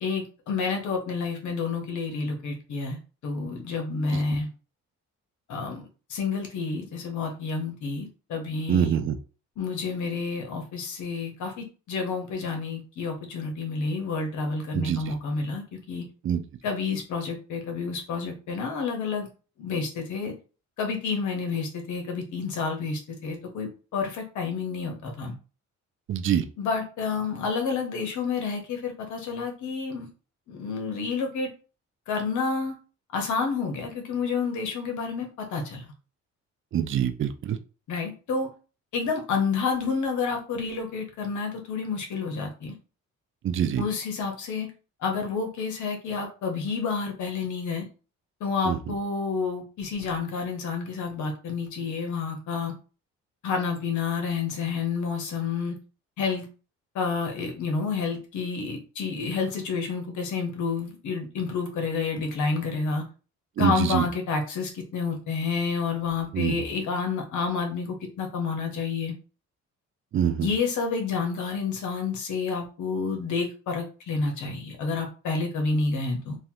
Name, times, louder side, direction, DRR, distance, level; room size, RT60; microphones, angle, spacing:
voice 1, 0.0-4.5 5.5-8.9 9.6-16.0 16.6-19.3 19.6-20.3 20.8-25.3 26.6-30.1 30.5-31.5 32.1-32.8 33.1-35.8 37.9-38.5 38.9-42.7 43.8-44.7 45.0-47.9 48.4-52.7 53.4-55.7 56.2-56.4 56.9-63.0 63.6-69.1 70.4-76.4, left 4 dB, 75° left, 3 dB, 1.0 m, -29 dB
voice 2, 8.7-9.2 14.7-15.1 16.2-16.4 26.1-26.4 36.7-37.6 43.4-43.8 48.7-48.9 63.6-64.1 66.3-66.6 70.1-70.5, right 9 dB, 45° right, 9 dB, 0.4 m, -25 dB
3.1 x 2.3 x 2.8 m, 0.35 s
cardioid pair, 90°, 30 cm